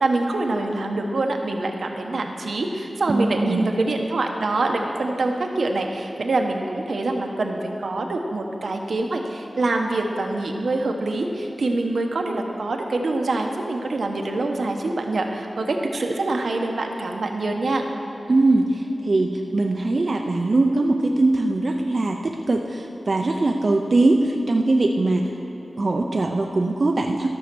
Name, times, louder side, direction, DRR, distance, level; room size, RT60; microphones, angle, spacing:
voice 1, 0.0-17.8, right 2 dB, 80° right, 3 dB, 1.0 m, -25 dB
voice 2, 3.1-3.7 18.3-25.4 25.8-27.3, right 2 dB, 55° right, 2 dB, 0.5 m, -21 dB
13.0 x 6.4 x 6.1 m, 2.9 s
wide cardioid pair, 95°, 0 cm